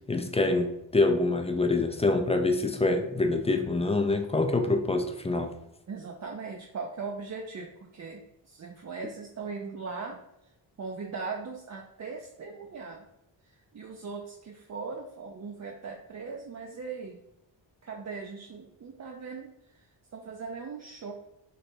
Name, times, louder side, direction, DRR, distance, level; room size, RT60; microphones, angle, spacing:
voice 1, 0.1-5.5, left 2 dB, 15° left, 6 dB, 0.4 m, -26 dB
voice 2, 5.9-10.2 10.8-13.1 13.5-17.2 17.8-21.1, right 4 dB, 40° right, 0 dB, 0.5 m, -39 dB
3.3 x 2.4 x 4.3 m, 0.83 s
cardioid pair, 65°, 45 cm